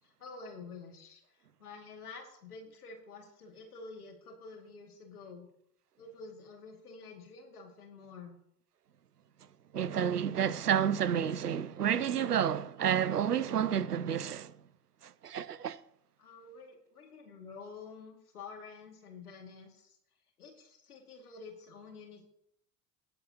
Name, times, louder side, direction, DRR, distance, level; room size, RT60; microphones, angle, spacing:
voice 1, 0.0-5.5 6.0-8.4 16.2-20.0 20.4-22.2, left 4 dB, 75° left, 2.2 m, -49 dB
voice 2, 9.7-14.5 15.0-15.8, right 9 dB, 90° right, 0.5 m, -30 dB
17.5 x 7.9 x 2.8 m
figure-of-eight pair, 70°, 45 cm